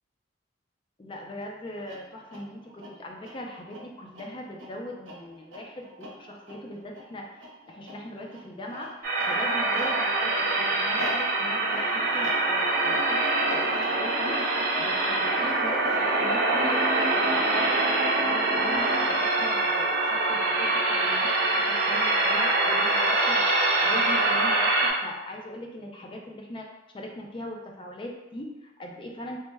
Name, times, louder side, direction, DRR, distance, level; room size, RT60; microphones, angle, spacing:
voice 1, 1.0-8.9 9.3-26.7 26.9-29.4, left 1 dB, 25° left, 0 dB, 0.4 m, -40 dB
sound 1, 1.7-17.5 18.5-19.4, equal, 90° right, 0.7 m, -42 dB
sound 2, 9.0-24.9, right 2 dB, 50° right, 0.8 m, -24 dB
3.2 x 2.1 x 3.2 m, 1.0 s
head